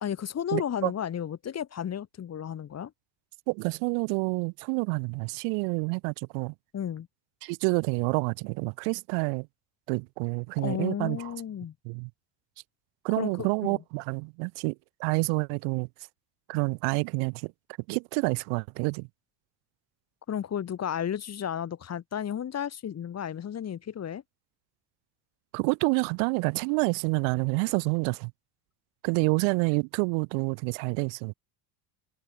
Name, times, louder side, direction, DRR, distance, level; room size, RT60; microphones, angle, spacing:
voice 1, 0.0-2.9 6.7-7.1 10.6-11.7 13.2-13.8 20.3-24.2, left 9 dB, 30° left, 1.0 m, -33 dB
voice 2, 0.5-0.9 3.5-6.5 7.4-9.5 9.9-11.3 11.9-12.1 13.0-15.9 16.5-17.5 17.9-19.1 25.5-28.3 29.0-31.3, right 40 dB or more, 75° right, 0.6 m, -28 dB
supercardioid pair, 90°, 50 cm